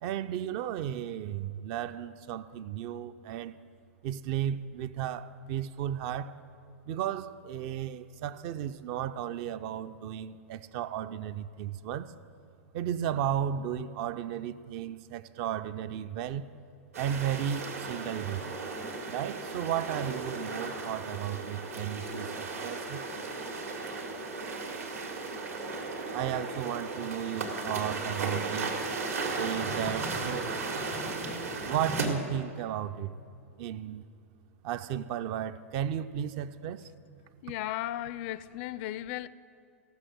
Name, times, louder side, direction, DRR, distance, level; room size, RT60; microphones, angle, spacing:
voice 1, 0.0-3.6 4.0-6.4 6.9-12.1 12.7-16.4 17.0-18.5 19.1-23.1 26.1-28.8 29.4-30.5 31.6-33.2 33.6-34.0 34.6-36.9, right 10 dB, 45° right, 0.4 m, -34 dB
sound 1, 16.9-32.1, right 3 dB, 75° right, 1.8 m, -35 dB
voice 2, 37.4-39.3, left 14 dB, 45° left, 0.4 m, -35 dB
15.5 x 6.2 x 6.1 m
figure-of-eight pair, 100°, 8 cm